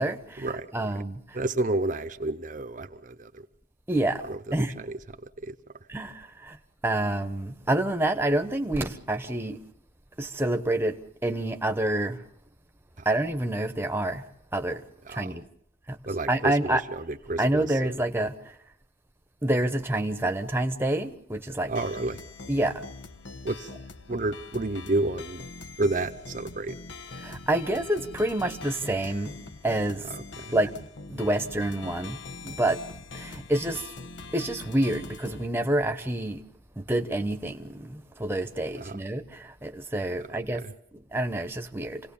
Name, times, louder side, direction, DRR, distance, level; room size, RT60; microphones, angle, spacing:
voice 1, 0.0-1.4 3.9-4.2 4.5-4.7 5.9-6.6 6.8-9.6 10.2-12.2 13.0-14.2 14.5-14.8 15.1-15.4 15.9-16.0 16.3-16.8 17.4-18.3 19.4-21.7 22.5-22.8 27.2-29.4 29.6-30.1 30.5-30.7 31.1-32.8 33.1-33.9 34.3-36.4 36.8-40.6 41.1-42.0, right 1 dB, 10° right, 1.0 m, -28 dB
voice 2, 1.3-3.3 4.3-4.4 4.8-5.0 5.4-5.5 15.1-15.3 16.1-16.8 17.1-17.9 21.7-22.2 23.4-23.7 24.1-25.4 25.8-26.7 30.4-30.5 38.8-39.0 40.5-40.7, right 2 dB, 45° right, 0.8 m, -30 dB
sound 1, 21.7-35.5, left 3 dB, 80° left, 1.2 m, -42 dB
27.5 x 18.0 x 7.1 m
head